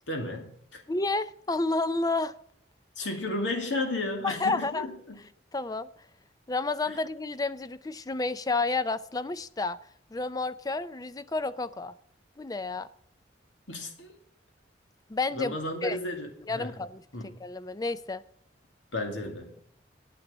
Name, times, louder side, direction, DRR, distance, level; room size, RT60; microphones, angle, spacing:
voice 1, 0.1-0.8 3.0-5.2 6.9-7.0 13.7-14.1 15.3-16.3 16.5-16.8 17.1-17.4 18.9-19.6, left 2 dB, 80° left, 3 dB, 2.4 m, -33 dB
voice 2, 0.9-2.3 4.2-4.9 5.5-5.9 6.5-9.8 10.1-11.9 12.4-12.9 15.1-15.6 15.8-16.0 16.5-18.2, left 3 dB, 20° left, 15 dB, 0.4 m, -30 dB
9.1 x 9.0 x 7.2 m, 0.66 s
head